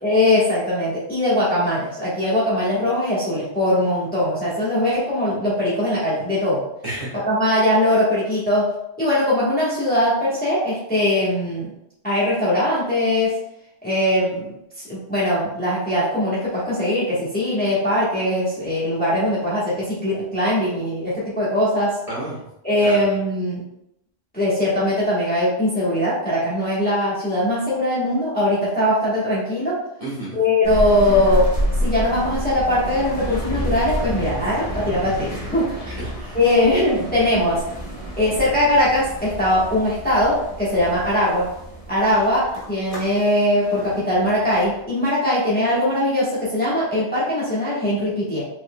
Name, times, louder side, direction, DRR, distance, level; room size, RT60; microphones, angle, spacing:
voice 1, 0.0-6.6 7.1-8.7 9.0-11.7 12.0-13.4 13.8-14.5 14.8-22.0 22.6-23.6 24.3-29.8 30.3-31.5 31.8-35.9 36.3-37.6 38.2-41.5 41.9-48.4, left 1 dB, 10° left, -9 dB, 1.3 m, -21 dB
voice 2, 6.8-7.2 22.1-22.4 22.8-23.0 30.0-30.4 35.9-36.6, right 1 dB, 30° right, -8 dB, 1.9 m, -31 dB
sound 1, 30.6-44.8, equal, 35° left, 1.1 m, -29 dB
4.9 x 4.2 x 2.3 m, 0.79 s
omnidirectional pair, 1.1 m